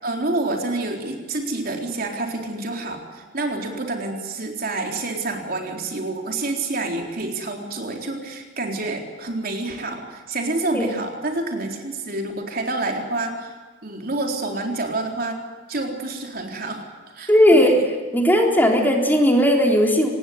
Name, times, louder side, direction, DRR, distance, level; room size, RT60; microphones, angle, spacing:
voice 1, 0.0-13.5 13.8-15.4 15.7-16.9 17.1-17.8, right 2 dB, 50° right, 2 dB, 3.9 m, -28 dB
voice 2, 17.3-17.7 18.1-20.1, equal, 10° left, 1 dB, 3.9 m, -16 dB
26.0 x 20.0 x 9.5 m, 1.3 s
head